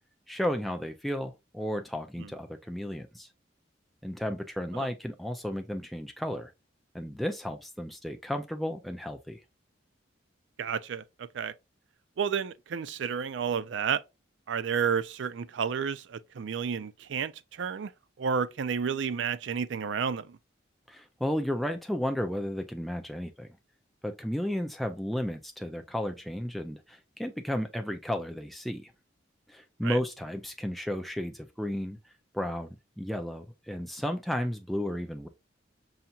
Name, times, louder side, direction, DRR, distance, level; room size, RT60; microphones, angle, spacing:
voice 1, 0.3-3.3 4.0-6.5 6.9-9.4 20.9-23.5 24.0-28.9 29.5-32.0 32.3-35.3, equal, ahead, 0.4 m, -33 dB
voice 2, 10.6-11.5 12.2-14.0 14.5-17.9 18.2-20.4 29.8-30.0, right 6 dB, 75° right, 0.4 m, -31 dB
5.6 x 2.8 x 2.3 m
head